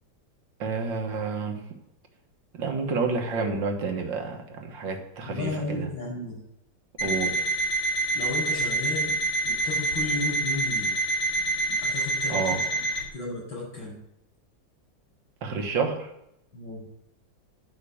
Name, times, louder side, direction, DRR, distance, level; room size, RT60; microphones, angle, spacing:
voice 1, 0.6-1.6 2.5-5.9 7.0-7.5 12.3-12.7 15.4-16.1, right 4 dB, 75° right, 4 dB, 2.1 m, -29 dB
voice 2, 5.2-6.4 8.1-9.2 9.4-11.0 11.7-12.8 13.1-14.0 16.5-16.9, left 3 dB, 75° left, -5 dB, 6.3 m, -34 dB
Alarm, 7.0-13.0, right 2 dB, 60° left, 5.1 m, -27 dB
11.0 x 5.5 x 8.5 m, 0.81 s
omnidirectional pair, 2.1 m